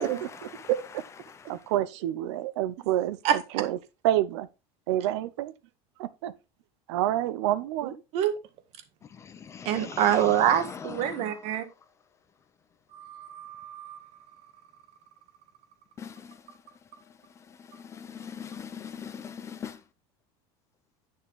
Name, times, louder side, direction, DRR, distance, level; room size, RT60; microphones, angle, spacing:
voice 1, 0.0-1.6 9.1-11.4 16.0-16.4 17.5-19.8, left 7 dB, 20° left, 0.6 m, -42 dB
voice 2, 1.5-3.8 4.0-4.5 4.9-5.5 6.0-6.3 6.9-7.9, right 13 dB, 85° right, 0.8 m, -28 dB
voice 3, 7.8-8.4 9.7-11.6 12.9-14.0, right 10 dB, 45° right, 1.7 m, -26 dB
9.4 x 6.7 x 3.6 m
cardioid pair, 165°, 14 cm